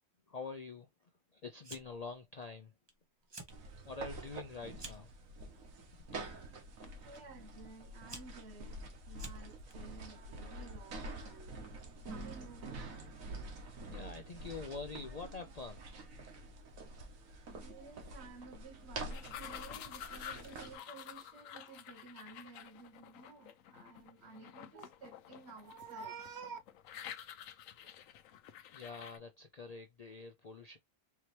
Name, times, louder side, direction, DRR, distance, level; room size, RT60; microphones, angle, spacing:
voice 1, 0.3-2.7 3.8-5.1 6.1-6.2 7.0-7.1 13.9-15.8 27.8-27.9 28.7-30.8, left 4 dB, 65° left, 0.4 m, -46 dB
Fire, 1.6-2.1 2.4-2.9 3.2-3.6 4.0-5.1 5.9-6.3 7.1-7.2 7.8-9.7, right 2 dB, 25° right, 0.7 m, -51 dB
sound 1, 3.5-20.8, right 2 dB, 85° right, 1.5 m, -47 dB
voice 2, 7.0-8.8 9.1-11.6 12.1-12.7 17.6-26.6, right 4 dB, 55° right, 1.1 m, -52 dB
sound 2, 19.1-29.2, left 10 dB, 90° left, 1.0 m, -50 dB
4.6 x 2.9 x 3.1 m
omnidirectional pair, 1.4 m